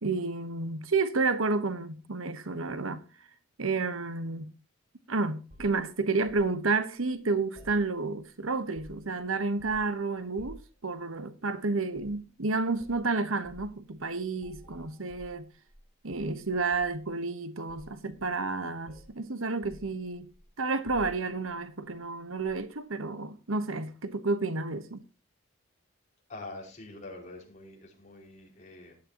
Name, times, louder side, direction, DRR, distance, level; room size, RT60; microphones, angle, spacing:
voice 1, 0.0-3.0 3.6-4.5 5.1-15.5 16.0-20.3 20.6-25.0, right 3 dB, 75° right, 1.1 m, -31 dB
sound 1, 5.5-6.5 7.5-8.3 8.6-9.2 9.6-9.9 10.4-10.8 11.9-12.2 12.8-13.0 13.4-13.7 14.4-15.8 16.1-17.0 17.7-18.5 18.9-19.2 19.6-20.4 20.8-21.5 22.4-22.6, equal, 30° right, 5.8 m, -51 dB
voice 2, 26.3-29.0, left 2 dB, 35° left, 5.1 m, -45 dB
16.5 x 11.5 x 2.9 m
head